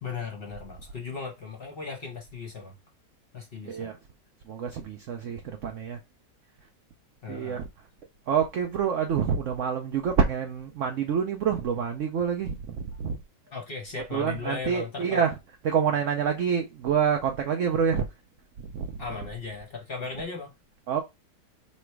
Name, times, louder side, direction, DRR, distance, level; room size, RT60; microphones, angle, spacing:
voice 1, 0.0-2.7 3.3-3.9 7.2-7.6 13.5-15.2 19.0-20.5, left 4 dB, 40° left, 1.0 m, -37 dB
voice 2, 3.6-4.0 4.5-6.0 7.3-7.6 8.3-13.2 14.1-15.3 15.6-18.1 18.7-18.9 20.9-21.0, right 7 dB, 75° right, 0.7 m, -27 dB
3.2 x 3.0 x 4.5 m
omnidirectional pair, 1.9 m